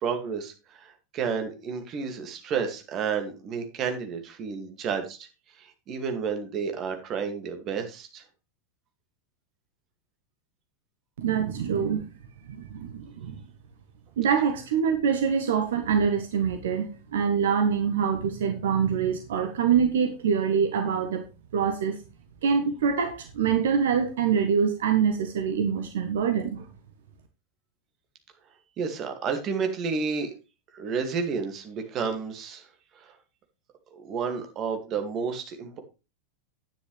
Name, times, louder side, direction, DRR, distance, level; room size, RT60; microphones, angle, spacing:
voice 1, 0.0-5.3 5.6-8.2 28.8-30.3 30.7-32.7 33.0-33.1 33.9-35.8, right 6 dB, 30° right, 6 dB, 2.2 m, -31 dB
voice 2, 11.2-12.0 12.5-13.4 14.2-21.2 21.5-21.9 22.4-26.6, right 7 dB, 60° right, 6 dB, 1.3 m, -25 dB
10.5 x 9.6 x 3.3 m, 0.29 s
figure-of-eight pair, 90°, 0 cm